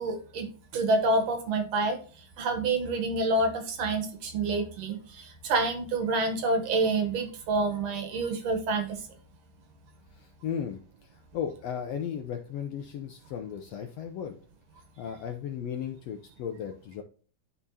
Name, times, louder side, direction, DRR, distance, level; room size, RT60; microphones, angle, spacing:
voice 1, 0.0-2.0 2.4-9.1, right 2 dB, 65° right, 6 dB, 2.0 m, -28 dB
voice 2, 10.1-14.4 15.0-17.0, left 8 dB, 75° left, 5 dB, 1.5 m, -36 dB
12.0 x 4.3 x 2.7 m, 0.42 s
omnidirectional pair, 3.5 m